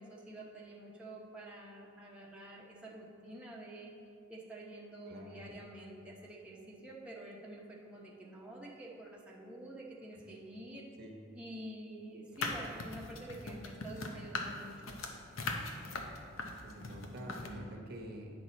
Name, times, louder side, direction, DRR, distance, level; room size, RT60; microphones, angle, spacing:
voice 1, 0.0-3.9 4.3-10.9 11.3-14.9, right 1 dB, 5° right, -5 dB, 0.8 m, -48 dB
voice 2, 5.1-5.4 11.0-11.1 16.6-18.3, right 1 dB, 50° right, 1 dB, 1.0 m, -47 dB
sound 1, 12.3-17.5, left 3 dB, 80° left, 0.8 m, -39 dB
9.0 x 6.0 x 4.1 m, 2.3 s
head